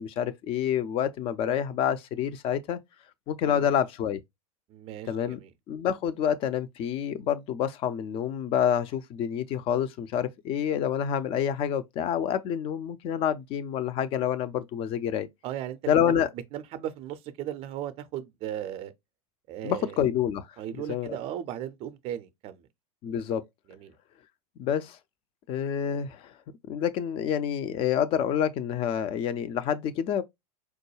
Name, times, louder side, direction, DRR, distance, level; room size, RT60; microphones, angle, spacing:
voice 1, 0.0-2.8 3.3-4.2 5.1-5.4 5.7-15.3 15.9-16.3 19.6-20.5 20.9-21.2 23.0-23.4 24.6-25.0 25.5-26.3 26.7-30.2, left 9 dB, 30° left, 0.4 m, -28 dB
voice 2, 4.7-5.5 15.4-16.2 16.5-18.9 19.5-20.0 20.6-22.6 23.7-23.9, right 11 dB, 30° right, 0.5 m, -37 dB
4.6 x 2.2 x 3.0 m
figure-of-eight pair, 85°, 20 cm